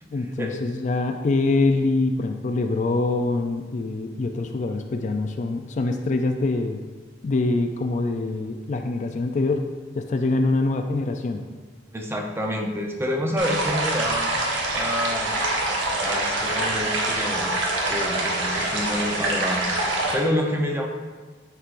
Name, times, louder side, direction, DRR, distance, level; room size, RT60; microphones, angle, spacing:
voice 1, 0.1-6.8 7.2-9.7 9.9-11.4, left 2 dB, 40° left, 5 dB, 0.4 m, -24 dB
voice 2, 11.9-14.3 14.7-15.3 16.0-17.6 17.9-19.7 20.1-20.9, left 1 dB, 15° right, 1 dB, 0.6 m, -28 dB
sound 1, 13.4-20.1, right 2 dB, 75° right, 1.1 m, -25 dB
9.8 x 4.5 x 2.5 m, 1.4 s
head